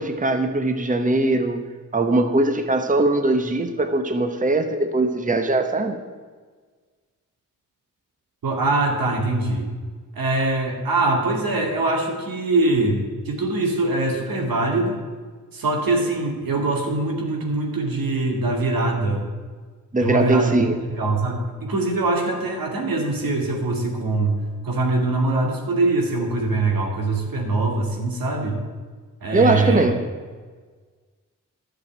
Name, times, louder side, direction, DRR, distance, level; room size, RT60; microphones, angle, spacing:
voice 1, 0.0-1.6 1.9-6.0 19.9-20.8 29.3-30.0, right 2 dB, 25° right, 7 dB, 1.0 m, -20 dB
voice 2, 8.4-9.7 10.1-14.9 15.5-19.2 20.0-20.6 20.9-28.6 29.2-29.9, right 2 dB, 85° right, 2 dB, 2.2 m, -23 dB
11.0 x 6.4 x 8.7 m, 1.5 s
cardioid pair, 60°, 34 cm